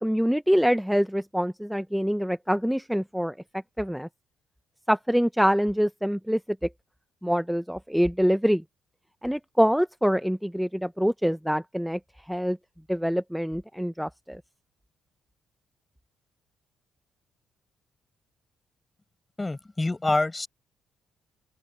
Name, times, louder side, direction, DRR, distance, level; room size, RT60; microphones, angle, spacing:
voice 1, 0.0-3.3 3.8-4.1 4.9-6.7 7.2-8.6 9.2-12.6 12.9-14.4, equal, ahead, 0.8 m, -25 dB
voice 2, 19.4-20.5, left 2 dB, 20° left, 6.3 m, -26 dB
open air
hypercardioid pair, 50°, 0 cm